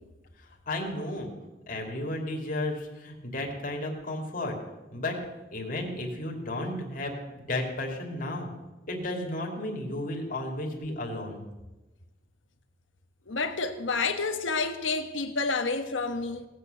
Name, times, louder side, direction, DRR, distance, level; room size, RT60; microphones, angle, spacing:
voice 1, 0.4-1.3 1.7-4.6 4.9-5.2 5.5-8.5 8.9-11.5, left 1 dB, 45° left, 2.8 m, -33 dB
voice 2, 13.3-16.5, left 4 dB, 80° left, 1.3 m, -29 dB
18.0 x 8.5 x 6.8 m
head